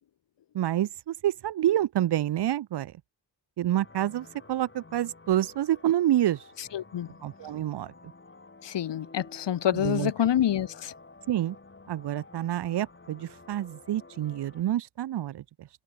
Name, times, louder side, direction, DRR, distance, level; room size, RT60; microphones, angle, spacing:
voice 1, 0.5-2.9 3.6-6.4 7.2-7.9 9.7-10.1 11.3-11.6 11.9-15.7, right 12 dB, 65° right, 0.5 m, -28 dB
sound 1, 3.7-14.6, left 3 dB, 25° left, 3.1 m, -52 dB
voice 2, 6.6-7.1 8.6-10.9, left 10 dB, 75° left, 0.7 m, -27 dB
wide cardioid pair, 150°, 44 cm